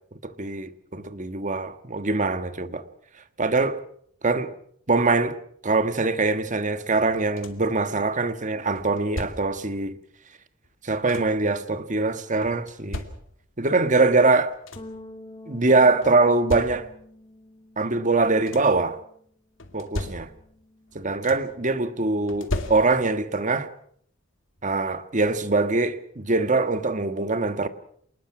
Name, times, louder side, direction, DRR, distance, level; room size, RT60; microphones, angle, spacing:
voice 1, 0.2-2.8 3.4-3.8 4.2-4.5 4.9-5.4 5.6-9.9 10.8-13.0 13.6-14.5 15.5-16.9 17.8-19.0 19.7-20.3 20.9-23.7 24.6-27.7, right 3 dB, 40° right, 1.5 m, -23 dB
sound 1, 7.0-7.8 8.7-9.7 10.6-11.5 12.4-13.6 14.2-14.3 14.5-15.1 16.0-17.2 18.1-18.9 19.6-20.6 20.9-21.6 22.3-23.3 24.6-24.7 25.2-25.4, left 1 dB, 70° left, 2.6 m, -36 dB
sound 2, 14.8-19.3 19.6-21.0, left 1 dB, 25° left, 1.9 m, -48 dB
28.0 x 20.0 x 6.0 m
head